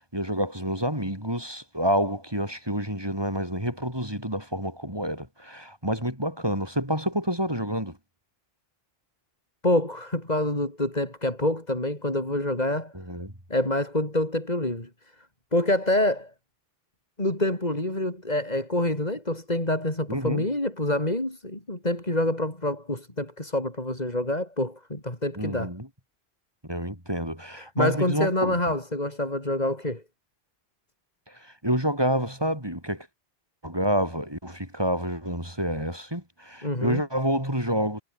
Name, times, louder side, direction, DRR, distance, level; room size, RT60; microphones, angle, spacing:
voice 1, 0.1-8.0 12.9-13.3 20.1-20.5 25.4-25.9 26.6-28.6 31.3-33.1 33.6-38.0, equal, 25° right, 7.4 m, -28 dB
voice 2, 9.6-12.9 13.5-14.9 15.5-16.3 17.2-25.7 27.6-30.0 36.6-37.0, left 1 dB, 40° left, 5.4 m, -26 dB
omnidirectional pair, 1.0 m